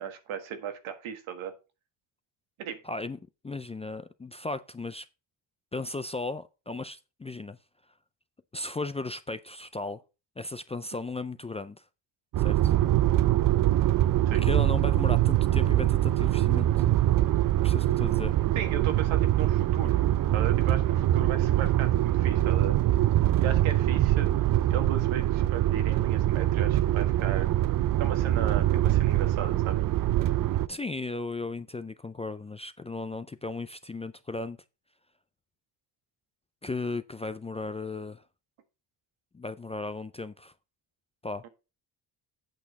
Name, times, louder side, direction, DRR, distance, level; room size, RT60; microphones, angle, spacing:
voice 1, 0.0-1.5 2.6-2.8 14.3-14.5 18.5-20.0 20.3-22.8 23.4-27.5 28.0-29.7 41.4-41.5, right 8 dB, 90° right, 1.6 m, -36 dB
voice 2, 2.8-3.2 3.4-5.1 5.7-7.6 8.5-10.0 10.4-11.8 12.4-12.7 14.3-16.7 17.6-18.3 30.7-34.6 36.6-38.2 39.3-40.5 41.2-41.4, left 3 dB, 15° left, 0.3 m, -36 dB
sound 1, 12.3-30.7, right 14 dB, 45° right, 0.5 m, -24 dB
8.3 x 6.2 x 4.0 m
cardioid pair, 105°, 46 cm